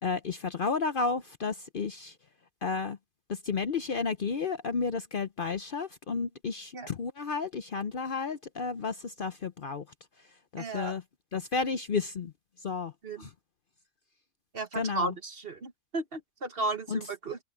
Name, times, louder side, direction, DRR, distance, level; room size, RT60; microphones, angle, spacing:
voice 1, 0.0-2.2 2.6-3.0 3.3-9.9 10.5-11.0 11.3-12.3 12.6-12.9 13.2-13.3 14.7-15.1 16.9-17.0, left 4 dB, 50° left, 0.8 m, -32 dB
voice 2, 10.6-11.0 13.0-13.3 14.5-17.4, right 2 dB, 45° right, 1.5 m, -34 dB
open air
omnidirectional pair, 1.4 m